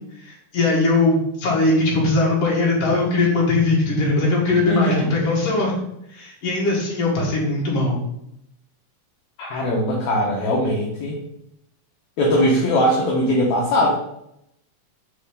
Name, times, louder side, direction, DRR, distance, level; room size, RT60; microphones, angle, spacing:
voice 1, 0.2-5.8 6.1-8.0, left 2 dB, 55° left, -3 dB, 2.7 m, -20 dB
voice 2, 4.7-5.1 9.4-11.2 12.2-13.9, equal, 70° left, -2 dB, 2.3 m, -20 dB
5.3 x 4.4 x 5.2 m, 0.78 s
omnidirectional pair, 3.6 m